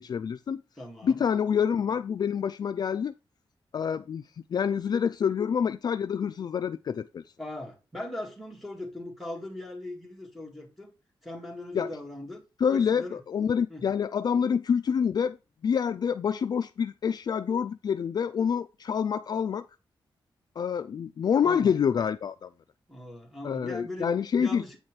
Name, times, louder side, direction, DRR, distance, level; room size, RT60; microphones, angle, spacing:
voice 1, 0.0-0.6 1.0-3.1 3.7-7.2 11.7-11.9 12.6-15.4 15.6-19.7 20.6-22.5 23.4-24.6, left 7 dB, 50° left, 0.3 m, -27 dB
voice 2, 0.8-1.2 7.4-10.9 11.2-12.4 12.7-13.2 13.7-13.9 21.4-21.7 22.9-24.8, left 1 dB, ahead, 2.1 m, -39 dB
8.6 x 4.4 x 4.7 m
wide cardioid pair, 155°, 9 cm